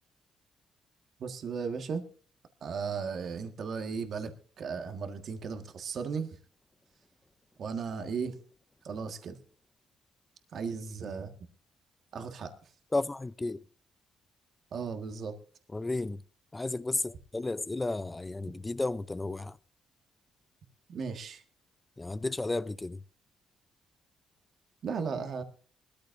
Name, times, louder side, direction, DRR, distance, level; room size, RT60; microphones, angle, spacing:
voice 1, 1.2-2.0 2.6-4.3 4.6-6.3 7.6-8.3 8.8-9.4 10.5-11.3 12.1-12.5 14.7-15.3 20.9-21.4 24.8-25.4, right 5 dB, 60° right, 1.6 m, -35 dB
voice 2, 12.9-13.6 15.7-16.2 16.5-19.6 22.0-23.0, left 2 dB, 20° left, 0.5 m, -33 dB
20.5 x 13.5 x 2.6 m
cardioid pair, 90°, 0 cm